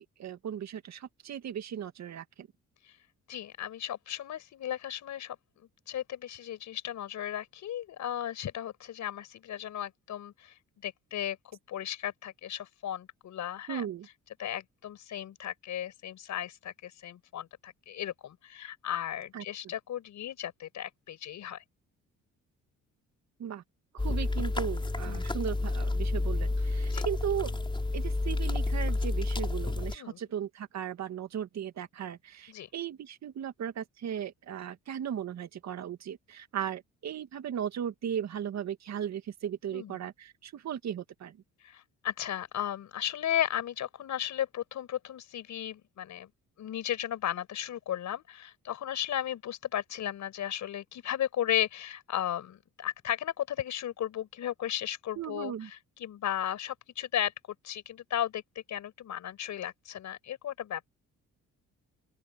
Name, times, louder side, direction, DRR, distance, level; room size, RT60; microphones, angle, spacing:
voice 1, 0.0-2.5 13.7-14.1 19.3-19.4 23.4-23.6 23.9-27.6 27.9-41.4 55.2-55.7, right 9 dB, 65° right, 2.1 m, -37 dB
voice 2, 3.3-10.5 10.8-11.4 11.7-13.9 14.4-21.6 25.1-25.4 26.9-27.1 29.9-30.2 32.5-32.7 39.7-40.0 41.6-46.3 46.6-57.3 57.6-60.9, left 11 dB, 70° left, 5.3 m, -35 dB
sound 1, 24.0-30.0, left 2 dB, 15° left, 4.2 m, -30 dB
open air
cardioid pair, 90°, 30 cm